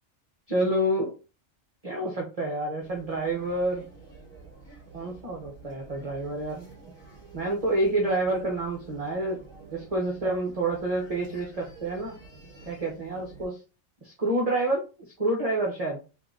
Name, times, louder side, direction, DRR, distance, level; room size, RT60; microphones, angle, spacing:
voice 1, 0.5-1.1 1.8-3.8 4.9-6.7 7.3-9.4 9.7-12.1 12.6-13.6 14.0-14.8 15.2-16.0, right 1 dB, 30° right, -1 dB, 0.9 m, -28 dB
sound 1, 2.8-13.5, right 3 dB, 20° left, 2.1 m, -50 dB
3.7 x 2.7 x 3.8 m, 0.32 s
omnidirectional pair, 1.3 m